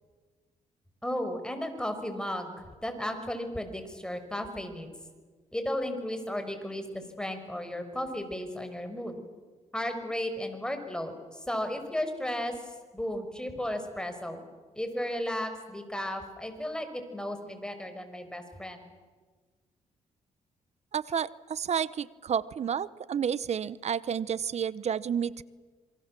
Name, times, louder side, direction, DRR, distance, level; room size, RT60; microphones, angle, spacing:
voice 1, 1.0-4.9 5.5-9.2 9.7-14.4 14.8-18.9, left 1 dB, 5° left, 7 dB, 5.5 m, -34 dB
voice 2, 20.9-25.4, right 8 dB, 55° right, 19 dB, 0.9 m, -30 dB
27.5 x 23.0 x 7.7 m, 1.4 s
cardioid pair, 70°, 13 cm